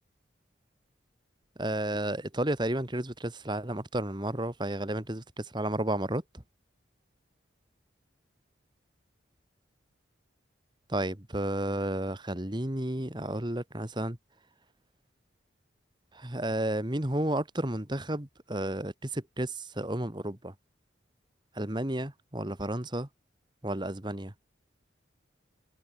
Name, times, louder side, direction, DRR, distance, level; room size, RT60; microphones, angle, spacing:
voice 1, 1.6-6.2 10.9-14.2 16.1-20.5 21.6-23.1 23.6-24.3, right 1 dB, 25° right, 1.9 m, -32 dB
head